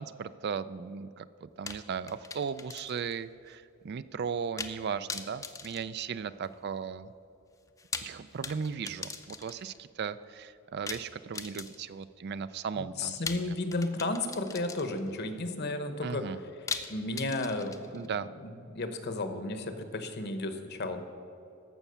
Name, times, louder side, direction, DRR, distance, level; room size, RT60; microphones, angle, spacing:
voice 1, 0.0-7.1 8.0-13.1 16.0-16.4 17.9-18.3, right 6 dB, 50° right, 14 dB, 0.4 m, -36 dB
sound 1, 1.7-3.2 3.5-3.6 4.6-4.8 5.1-6.6 7.7-9.8 10.9-12.0 13.3-15.2 16.7-18.1, left 4 dB, 15° left, 0.5 m, -40 dB
voice 2, 12.7-16.3 16.9-18.1 18.7-21.0, left 2 dB, 50° left, 8 dB, 1.0 m, -33 dB
14.5 x 5.8 x 6.8 m, 2.8 s
head